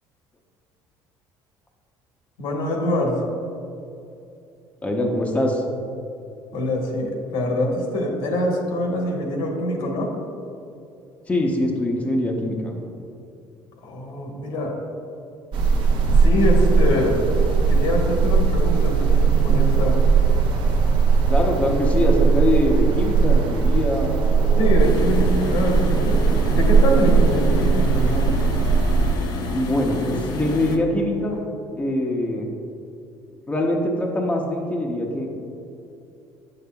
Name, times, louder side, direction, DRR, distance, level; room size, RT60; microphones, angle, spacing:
voice 1, 2.4-3.2 6.5-10.1 13.8-14.7 16.1-17.2 17.7-20.0 24.6-28.3, left 1 dB, 75° left, 0 dB, 1.3 m, -24 dB
voice 2, 4.8-5.6 11.3-12.7 21.3-24.8 29.5-31.4 31.7-32.5 33.5-35.5, left 1 dB, 15° left, 0 dB, 0.7 m, -23 dB
sound 1, 15.5-29.2, right 5 dB, 60° right, 0.9 m, -18 dB
sound 2, 24.8-30.8, left 3 dB, 50° left, 0.7 m, -29 dB
8.4 x 6.7 x 2.3 m, 2.6 s
cardioid pair, 115°, 9 cm